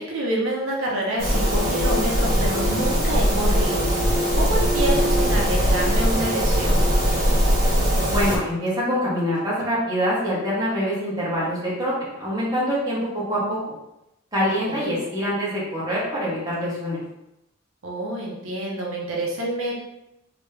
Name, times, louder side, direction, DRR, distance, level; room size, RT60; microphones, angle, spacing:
voice 1, 0.0-6.9 14.7-14.9 17.8-19.8, right 1 dB, 85° right, -2 dB, 0.8 m, -27 dB
sound 1, 1.2-8.4, equal, 50° right, 1.3 m, -20 dB
voice 2, 8.1-13.7 14.3-17.0, equal, 20° right, -8 dB, 1.3 m, -25 dB
3.2 x 2.9 x 3.3 m, 0.87 s
head